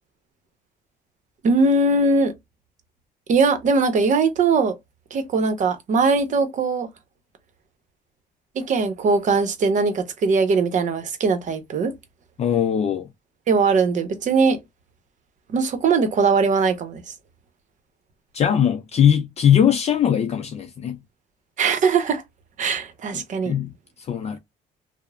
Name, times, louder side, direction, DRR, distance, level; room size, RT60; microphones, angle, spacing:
voice 1, 1.4-2.3 3.3-4.8 5.1-6.9 8.5-11.9 13.5-14.6 15.5-17.0 21.6-22.2 22.6-23.5, right 4 dB, 45° right, 0.8 m, -20 dB
voice 2, 12.4-13.1 18.3-21.0 23.1-24.4, left 9 dB, 40° left, 0.4 m, -21 dB
2.9 x 2.0 x 2.4 m
cardioid pair, 110°, 17 cm